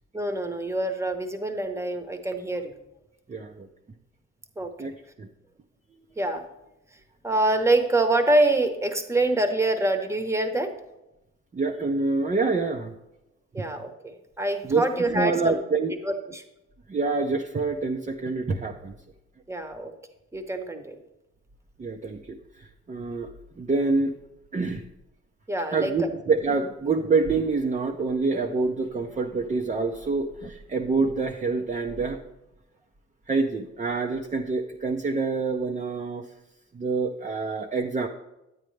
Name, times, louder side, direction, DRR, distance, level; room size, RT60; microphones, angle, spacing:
voice 1, 0.1-2.7 4.6-4.7 6.2-6.4 7.2-10.7 13.5-15.6 16.0-16.4 19.5-19.9 20.3-20.9 25.5-26.1, right 2 dB, 10° right, 6 dB, 1.1 m, -25 dB
voice 2, 3.3-3.7 4.8-4.9 5.2-5.3 11.5-12.9 13.6-13.7 14.6-14.8 15.1-15.9 16.9-19.0 21.8-23.3 23.6-24.1 24.5-24.8 25.7-32.2 33.3-36.3 36.7-38.1, right 4 dB, 25° right, 3 dB, 0.6 m, -26 dB
9.5 x 9.1 x 3.3 m, 0.93 s
cardioid pair, 90°, 30 cm